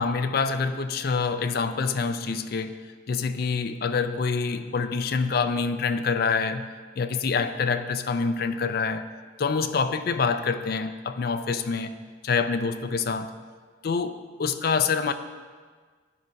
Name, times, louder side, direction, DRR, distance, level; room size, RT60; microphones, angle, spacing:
voice 1, 0.0-2.8 3.1-6.7 7.0-9.1 9.4-12.0 12.2-13.3 13.8-15.1, left 5 dB, 50° left, 10 dB, 0.4 m, -26 dB
10.0 x 4.6 x 5.2 m, 1.5 s
head